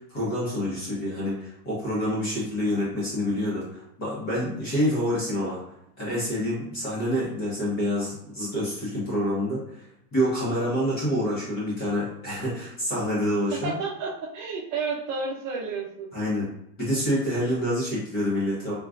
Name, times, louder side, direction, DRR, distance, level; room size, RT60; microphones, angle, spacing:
voice 1, 0.0-5.6 6.0-9.9 10.1-13.7 16.1-16.5 16.8-18.7, equal, 20° left, -7 dB, 0.8 m, -27 dB
voice 2, 13.5-16.1, right 4 dB, 45° right, -3 dB, 0.8 m, -31 dB
3.6 x 2.2 x 2.4 m, 0.79 s
supercardioid pair, 175°, 49 cm